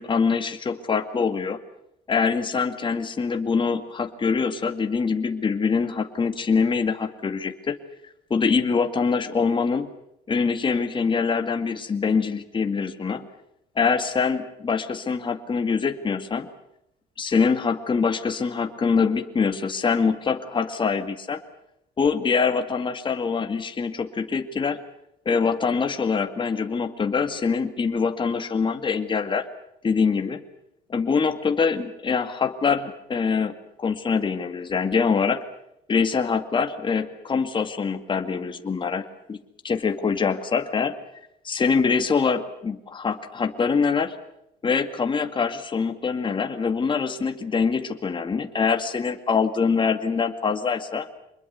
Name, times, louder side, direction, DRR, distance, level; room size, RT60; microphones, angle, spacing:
voice 1, 0.0-1.6 2.1-7.8 8.3-9.9 10.3-13.3 13.8-16.5 17.2-21.4 22.0-24.8 25.3-29.5 29.8-30.4 30.9-35.4 35.9-39.4 39.6-41.0 41.4-44.1 44.6-51.1, left 5 dB, 30° left, 6 dB, 2.0 m, -24 dB
25.0 x 21.5 x 8.0 m, 0.79 s
cardioid pair, 110°, 17 cm